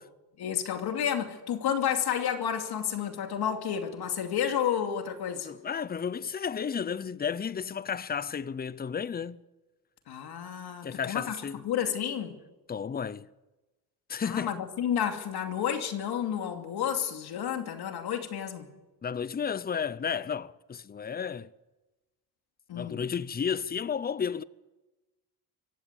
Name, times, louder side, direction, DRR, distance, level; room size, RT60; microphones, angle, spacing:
voice 1, 0.4-5.5 10.1-12.4 14.2-18.7 22.7-23.0, left 9 dB, 70° left, 2.7 m, -31 dB
voice 2, 5.4-9.4 10.8-11.6 12.7-13.3 14.1-14.6 19.0-21.5 22.7-24.4, left 7 dB, 25° left, 0.6 m, -32 dB
24.0 x 16.0 x 8.2 m
cardioid pair, 115°, 40 cm